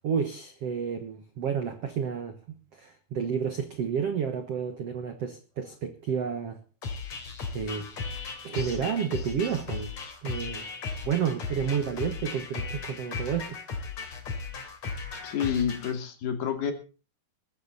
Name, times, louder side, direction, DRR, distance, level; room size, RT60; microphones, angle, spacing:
voice 1, 0.0-6.6 7.5-7.9 8.4-9.9 10.2-10.7 11.0-13.6, right 7 dB, 65° right, 9 dB, 1.5 m, -31 dB
sound 1, 6.8-15.9, left 4 dB, 45° left, 4.3 m, -36 dB
voice 2, 15.2-16.7, left 8 dB, 70° left, 7 dB, 4.6 m, -29 dB
19.0 x 13.5 x 4.1 m, 0.34 s
omnidirectional pair, 4.8 m